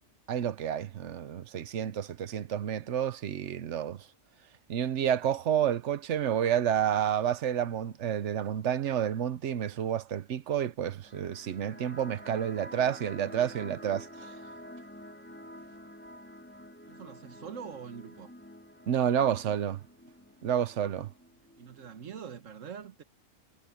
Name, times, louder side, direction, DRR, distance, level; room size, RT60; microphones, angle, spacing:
voice 1, 0.3-4.1 4.7-14.3 18.9-19.8 20.4-21.1, right 9 dB, 70° right, 1.1 m, -30 dB
sound 1, 11.0-22.0, equal, 10° left, 4.2 m, -49 dB
voice 2, 16.9-18.3 21.6-23.0, right 7 dB, 85° right, 1.6 m, -44 dB
omnidirectional pair, 1.3 m